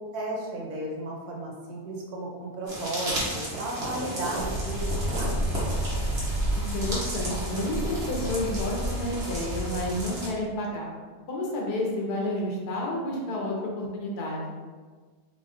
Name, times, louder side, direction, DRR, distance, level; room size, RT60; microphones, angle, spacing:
voice 1, 0.1-5.4, right 1 dB, 75° right, -1 dB, 1.2 m, -34 dB
sound 1, 2.7-10.3, right 1 dB, 45° right, 1.2 m, -35 dB
sound 2, 4.4-10.2, equal, 45° left, 0.6 m, -31 dB
voice 2, 6.5-10.8 11.3-14.5, left 1 dB, 80° left, -2 dB, 1.4 m, -30 dB
3.8 x 3.5 x 2.6 m, 1.4 s
omnidirectional pair, 1.6 m